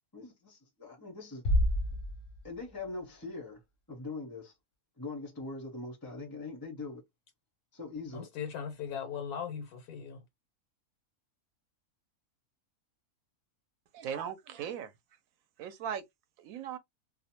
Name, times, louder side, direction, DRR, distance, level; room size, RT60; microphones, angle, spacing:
voice 1, 0.1-1.4 2.4-3.6 3.9-4.5 5.0-7.0 7.7-8.3, left 3 dB, 30° left, 0.4 m, -42 dB
sound 1, 1.4-2.9, equal, 60° left, 0.7 m, -29 dB
voice 2, 8.1-10.2, left 7 dB, 90° left, 1.1 m, -38 dB
voice 3, 13.9-14.9 15.6-16.0 16.4-16.8, right 8 dB, 70° right, 1.0 m, -38 dB
2.6 x 2.1 x 2.7 m
omnidirectional pair, 1.6 m